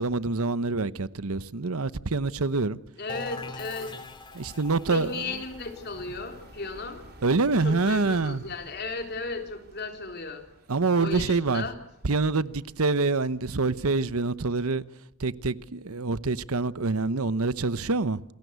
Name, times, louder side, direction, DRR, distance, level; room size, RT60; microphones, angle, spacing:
voice 1, 0.0-2.8 4.3-5.3 7.2-8.4 10.7-11.7 12.0-14.8 15.2-18.2, right 3 dB, 85° right, 1.0 m, -26 dB
voice 2, 3.0-3.9 4.9-7.1 7.6-10.4 10.9-11.8, left 3 dB, 50° left, 3.9 m, -35 dB
sound 1, 3.1-8.7, left 2 dB, 20° left, 2.7 m, -44 dB
sound 2, 3.1-13.4, right 1 dB, 45° right, 3.7 m, -53 dB
28.5 x 21.5 x 8.2 m
head